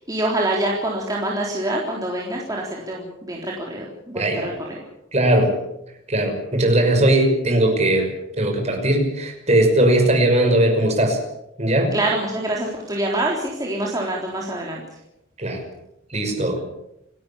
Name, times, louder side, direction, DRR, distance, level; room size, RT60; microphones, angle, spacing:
voice 1, 0.0-4.8 11.9-14.8, right 1 dB, 20° right, -2 dB, 3.8 m, -25 dB
voice 2, 4.2-4.5 5.1-5.5 6.1-11.2 11.6-12.0 15.4-15.6 16.1-16.6, right 1 dB, 35° right, 3 dB, 5.8 m, -19 dB
28.5 x 13.0 x 8.5 m, 0.86 s
head